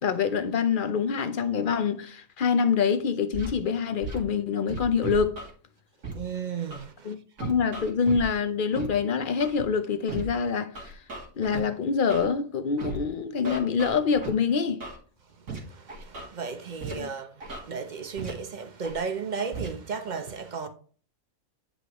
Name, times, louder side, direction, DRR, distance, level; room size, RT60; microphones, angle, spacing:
voice 1, 0.0-5.4 7.0-10.9 11.4-14.8 16.9-17.1, left 6 dB, 50° left, 0.7 m, -26 dB
Scratching (performance technique), 3.3-3.5 4.0-4.2 4.7-5.5 6.0-6.1 6.7-6.8 7.4-8.2 8.7-8.9 9.4-9.6 10.1-10.2 10.8-11.6 12.1-12.3 12.8-13.0 13.5-14.3 14.8-15.0 15.5-15.6 15.9-16.3 16.8-16.9 17.4-17.6 18.2-18.3 18.8-19.0 19.5-19.7, right 3 dB, 70° right, 2.4 m, -35 dB
voice 2, 6.1-7.1 15.7-20.7, right 5 dB, 40° right, 0.8 m, -34 dB
9.4 x 5.3 x 3.0 m
omnidirectional pair, 1.5 m